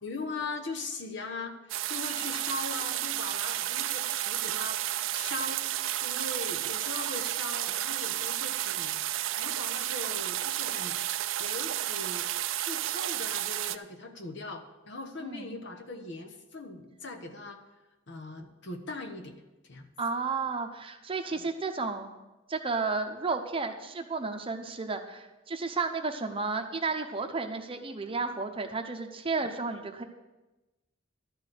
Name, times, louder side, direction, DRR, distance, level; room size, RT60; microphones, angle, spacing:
voice 1, 0.0-1.6 1.9-4.8 5.1-5.7 6.0-9.0 9.4-11.0 11.4-12.3 12.6-17.6 18.1-19.4 19.7-19.9 21.3-21.4, left 3 dB, 60° left, 5 dB, 1.1 m, -40 dB
sound 1, 1.7-13.8, right 13 dB, 70° right, 0.4 m, -32 dB
voice 2, 15.2-15.6 20.0-22.1 22.5-30.0, right 4 dB, 25° right, 5 dB, 0.8 m, -32 dB
12.0 x 4.8 x 7.9 m, 1.1 s
head